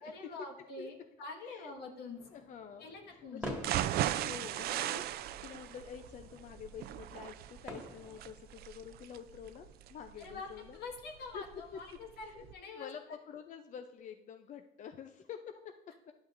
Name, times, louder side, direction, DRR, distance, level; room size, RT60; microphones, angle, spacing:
voice 1, 0.0-2.5 2.8-3.5 10.2-13.2, left 3 dB, 75° left, 1 dB, 1.6 m, -46 dB
voice 2, 1.4-1.7 2.3-3.6 4.2-10.8 11.3-11.4 12.2-12.4 12.7-15.7 16.1-16.2, left 8 dB, 50° left, 7 dB, 0.5 m, -48 dB
sound 1, 2.1-8.6, equal, 5° right, 1.7 m, -49 dB
sound 2, 3.6-11.5 11.9-12.0 12.4-12.5, right 12 dB, 70° right, 0.4 m, -37 dB
11.0 x 6.1 x 2.5 m, 1.0 s
cardioid pair, 110°, 17 cm